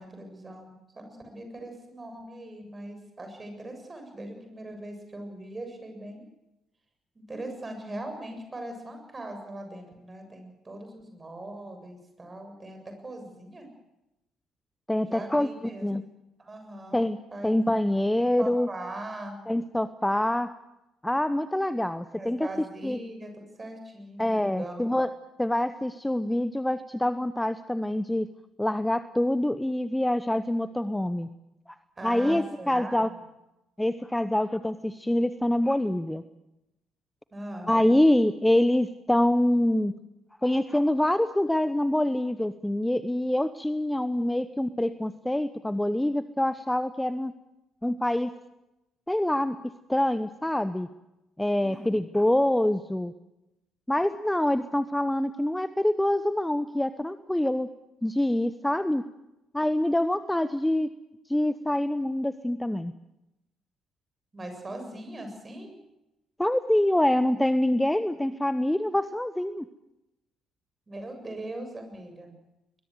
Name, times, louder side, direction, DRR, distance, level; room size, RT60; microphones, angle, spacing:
voice 1, 0.0-6.3 7.2-12.8 13.0-13.7 15.0-15.9 16.4-17.0 17.3-17.5 18.2-19.4 22.1-24.9 32.0-33.2 37.3-37.8 51.6-51.9 64.3-65.8 70.9-72.4, right 1 dB, 25° right, 5 dB, 7.4 m, -40 dB
voice 2, 14.9-15.5 15.8-16.0 16.9-17.2 17.4-18.7 19.5-20.5 21.0-22.5 22.8-23.0 24.2-25.1 25.4-28.3 28.6-31.3 32.0-33.1 33.8-36.2 37.7-39.9 40.4-47.3 47.8-48.3 49.1-49.6 49.9-50.9 51.4-53.1 53.9-57.7 58.0-59.0 59.5-60.9 61.3-62.9 66.4-69.6, left 1 dB, 5° left, 14 dB, 0.9 m, -25 dB
22.0 x 21.5 x 7.9 m, 0.93 s
figure-of-eight pair, 45°, 0 cm